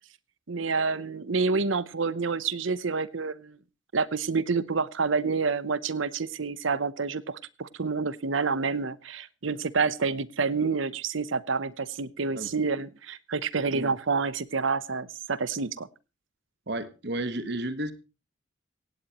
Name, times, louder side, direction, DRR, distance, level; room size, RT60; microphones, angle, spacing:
voice 1, 0.5-3.6 3.9-15.9, right 4 dB, 80° right, 18 dB, 0.8 m, -28 dB
voice 2, 16.7-17.9, right 1 dB, 55° right, 13 dB, 1.4 m, -32 dB
17.0 x 17.0 x 3.0 m, 0.31 s
head